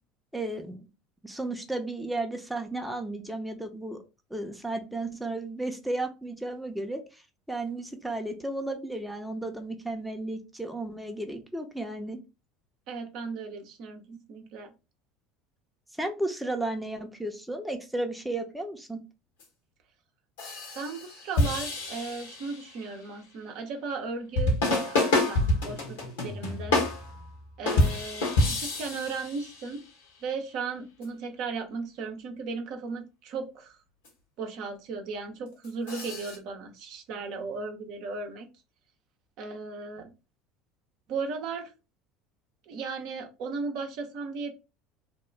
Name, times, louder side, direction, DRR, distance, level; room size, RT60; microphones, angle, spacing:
voice 1, 0.3-0.9 1.2-4.0 4.3-7.2 7.5-12.2 16.0-19.0, right 2 dB, 5° right, 4 dB, 0.6 m, -33 dB
voice 2, 12.9-14.0 14.3-14.7 20.7-24.6 24.8-26.8 27.6-29.8 30.2-33.8 34.4-38.5 39.4-40.1 41.1-41.7 42.7-44.5, right 4 dB, 60° right, 4 dB, 0.6 m, -36 dB
sound 1, 19.4-19.5 20.4-22.9 24.4-29.8 31.0-31.1 34.0-34.1 35.6-36.4, left 2 dB, 75° left, 1.1 m, -28 dB
2.9 x 2.2 x 3.3 m, 0.29 s
hypercardioid pair, 70°, 0 cm